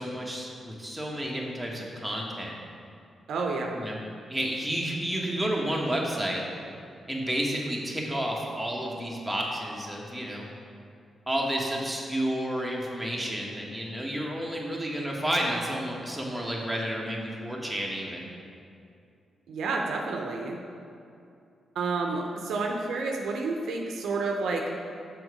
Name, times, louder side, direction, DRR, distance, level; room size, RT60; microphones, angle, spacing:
voice 1, 0.0-2.5 3.7-4.0 4.3-6.4 7.1-10.5 11.3-18.3, right 1 dB, 5° right, -3 dB, 1.6 m, -31 dB
voice 2, 3.3-3.8 19.5-20.6 21.7-24.6, right 3 dB, 75° right, 0 dB, 0.7 m, -30 dB
6.2 x 4.7 x 5.0 m, 2.5 s
supercardioid pair, 50°, 0 cm